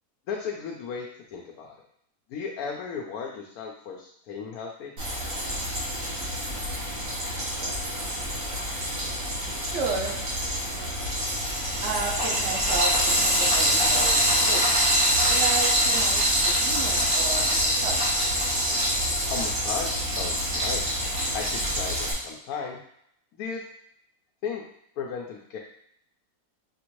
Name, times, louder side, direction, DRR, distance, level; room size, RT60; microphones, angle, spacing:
voice 1, 0.3-1.7 2.3-4.9 19.3-21.0 21.3-22.8 23.4-23.6 24.4-24.6 25.0-25.6, left 6 dB, 80° left, -1 dB, 1.1 m, -35 dB
Frying (food), 5.0-22.1, equal, 90° right, 2.0 m, -25 dB
voice 2, 9.6-10.2 11.8-14.7 15.2-18.3, right 4 dB, 55° right, -1 dB, 0.9 m, -33 dB
5.6 x 2.6 x 3.0 m, 0.72 s
omnidirectional pair, 1.6 m